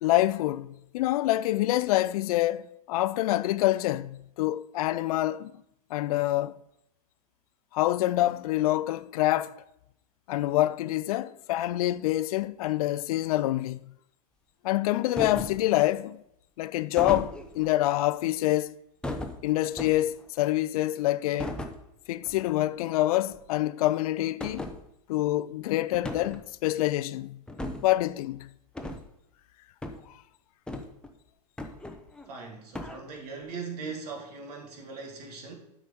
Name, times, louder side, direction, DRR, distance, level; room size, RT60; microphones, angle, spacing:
voice 1, 0.0-5.5 5.9-6.5 7.7-9.6 10.3-13.8 14.6-16.2 16.6-18.7 19.4-21.6 22.1-24.7 25.1-27.4 27.8-28.5, left 15 dB, 60° left, 0.4 m, -26 dB
sound 1, 15.2-15.7 17.0-17.7 19.0-20.2 21.4-21.8 22.2-22.5 22.7-22.8 23.3-23.4 24.4-24.8 25.9-26.5 27.5-27.9 28.7-29.0 29.8-30.0 30.7-31.1 31.6-32.3 32.7-33.0, left 1 dB, 5° left, 0.7 m, -36 dB
voice 2, 32.3-35.5, right 4 dB, 70° right, 2.3 m, -40 dB
8.2 x 5.0 x 5.3 m
hypercardioid pair, 120°, 21 cm